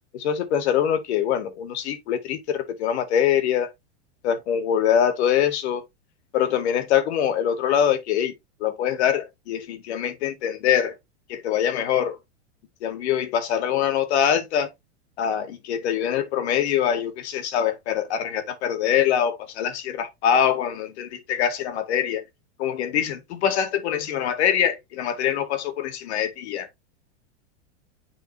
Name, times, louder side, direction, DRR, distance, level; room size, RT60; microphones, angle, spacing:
voice 1, 0.1-3.7 4.2-5.8 6.3-8.3 8.6-10.9 11.3-12.2 12.8-14.7 15.2-22.2 22.6-26.7, left 9 dB, 65° left, 1.9 m, -24 dB
9.5 x 4.1 x 2.8 m
supercardioid pair, 135°, 35 cm